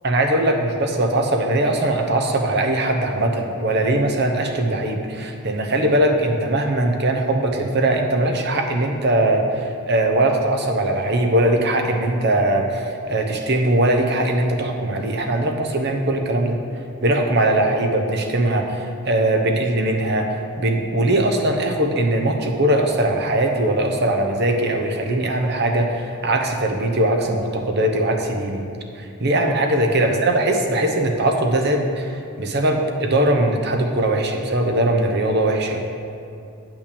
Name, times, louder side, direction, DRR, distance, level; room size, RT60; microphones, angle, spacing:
voice 1, 0.0-16.6 17.0-20.3 20.6-28.6 29.0-35.8, right 1 dB, 50° right, 3 dB, 0.9 m, -20 dB
8.7 x 5.8 x 6.9 m, 2.5 s
head